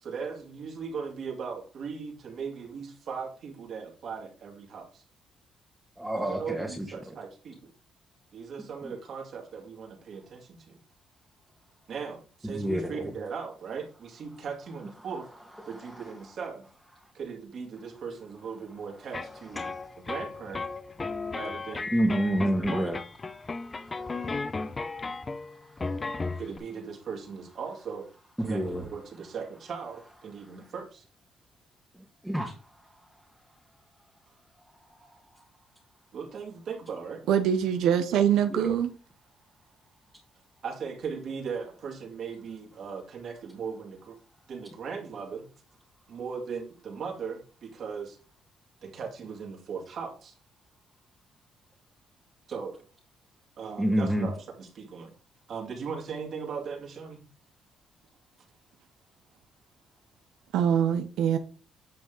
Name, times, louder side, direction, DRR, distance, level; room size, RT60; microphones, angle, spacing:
voice 1, 0.0-5.0 6.0-7.7 8.3-10.8 11.9-15.3 15.7-16.7 17.1-19.7 20.0-20.6 21.3-21.9 22.7-22.9 26.4-28.1 28.4-31.0 36.1-37.2 40.6-44.2 44.5-45.5 46.1-48.2 48.8-50.3 52.5-52.8 53.6-55.1 55.5-57.2, right 6 dB, 65° right, 2.4 m, -38 dB
voice 2, 6.0-7.1 8.8-8.9 12.4-13.1 15.6-16.1 19.6-19.8 21.9-23.0 23.6-24.3 25.7-26.2 28.4-28.9 32.2-32.5 35.0-35.1 38.5-38.8 53.8-54.3, right 1 dB, 5° right, 1.6 m, -29 dB
sound 1, 19.1-26.6, left 3 dB, 30° left, 0.7 m, -35 dB
voice 3, 37.3-38.9 60.5-61.4, right 9 dB, 85° right, 0.7 m, -24 dB
9.3 x 5.2 x 3.8 m
cardioid pair, 90°, 0 cm